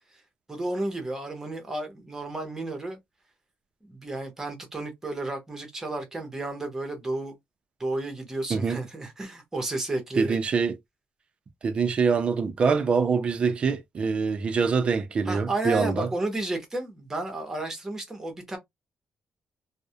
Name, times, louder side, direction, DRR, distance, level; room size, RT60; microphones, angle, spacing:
voice 1, 0.5-3.0 3.8-7.3 7.8-10.4 15.2-18.6, right 2 dB, 15° right, 0.8 m, -32 dB
voice 2, 10.2-10.8 11.6-16.1, right 5 dB, 35° right, 0.4 m, -24 dB
2.3 x 2.0 x 2.7 m
cardioid pair, 170°, 3 cm